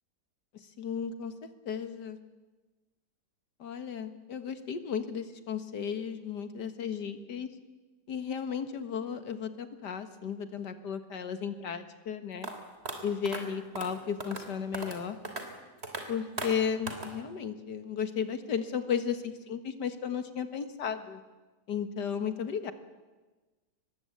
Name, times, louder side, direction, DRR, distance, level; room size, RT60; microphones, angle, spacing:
voice 1, 0.8-1.3 1.7-2.2 3.6-7.5 8.1-12.5 13.0-15.2 16.1-21.2 21.7-22.7, left 7 dB, 75° left, 10 dB, 2.1 m, -34 dB
sound 1, 12.4-12.5 12.9-13.0 13.3-13.4 13.8-13.9 14.2-14.4 14.7-15.0 15.3-15.4 15.8-16.0 16.4-16.5 16.9-17.1, right 2 dB, 35° right, 3.4 m, -36 dB
24.0 x 20.5 x 8.6 m, 1.2 s
omnidirectional pair, 1.8 m